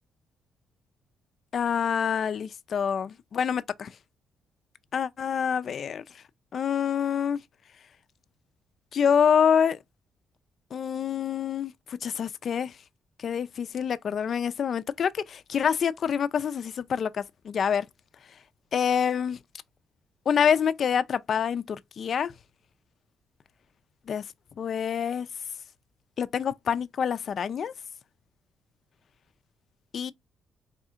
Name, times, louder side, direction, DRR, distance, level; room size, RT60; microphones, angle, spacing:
voice 1, 1.5-3.9 4.9-6.2 6.5-7.4 8.9-9.8 10.7-12.8 13.2-17.9 18.7-19.4 20.3-22.3 24.1-24.2 24.6-25.3 26.2-27.7 29.9-30.1, left 7 dB, 55° left, 0.3 m, -26 dB
4.1 x 2.7 x 2.4 m
cardioid pair, 90°, 0 cm